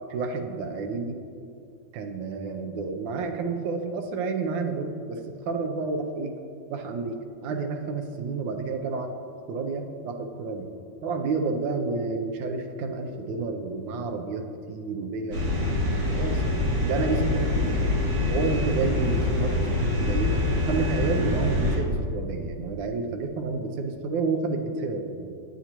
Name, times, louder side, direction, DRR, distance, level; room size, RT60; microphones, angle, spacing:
voice 1, 0.1-1.2 1.9-6.3 6.7-9.1 9.5-10.7 11.0-15.8 16.1-16.4 16.9-17.4 17.7-17.9 18.3-25.3, right 4 dB, 85° right, 4 dB, 1.4 m, -30 dB
sound 1, 15.3-21.8, left 2 dB, 70° right, 2.7 m, -25 dB
9.3 x 8.3 x 2.9 m, 2.3 s
omnidirectional pair, 2.0 m